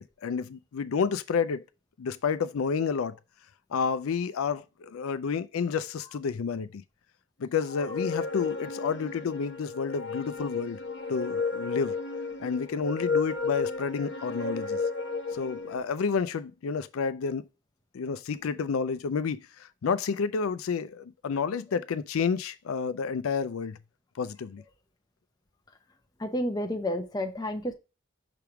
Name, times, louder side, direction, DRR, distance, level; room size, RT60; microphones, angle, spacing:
voice 1, 0.0-1.6 2.0-3.2 3.7-6.8 7.4-10.8 11.1-12.0 12.4-14.8 15.3-17.5 17.9-23.8 24.2-24.6, left 5 dB, 90° left, 0.4 m, -30 dB
sound 1, 7.7-15.8, left 4 dB, 60° left, 1.1 m, -33 dB
voice 2, 26.2-27.7, left 1 dB, 20° left, 0.8 m, -30 dB
5.8 x 3.5 x 5.8 m
head